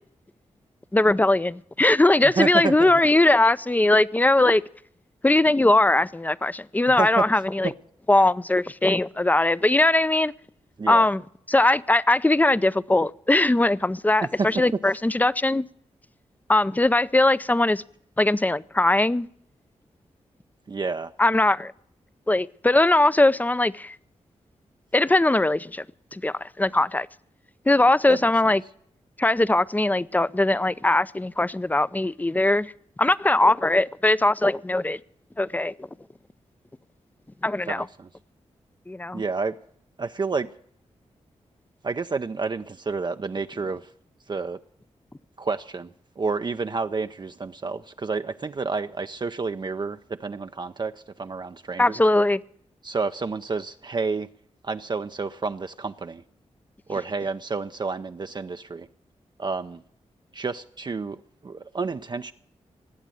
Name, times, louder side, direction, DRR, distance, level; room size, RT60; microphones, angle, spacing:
voice 1, 0.9-4.6 5.2-7.7 8.1-10.3 10.9-11.2 11.5-15.6 16.5-17.8 18.2-19.3 21.2-21.7 22.3-24.0 24.9-25.8 26.1-27.1 27.7-28.6 29.2-32.7 33.0-35.0 35.4-35.7 37.4-37.9 38.9-39.2 51.8-52.4, left 2 dB, 15° left, 0.5 m, -20 dB
voice 2, 2.2-2.9 7.0-7.2 7.6-7.7 10.8-11.1 14.2-14.5 20.7-21.1 28.1-28.5 37.7-38.1 39.1-39.6 40.0-40.5 41.8-43.9 44.3-44.6 45.4-52.0 52.8-54.3 54.6-56.2 56.9-58.9 59.4-59.8 60.3-62.3, right 4 dB, 40° right, 0.5 m, -30 dB
19.0 x 8.2 x 7.6 m
cardioid pair, 65°, 12 cm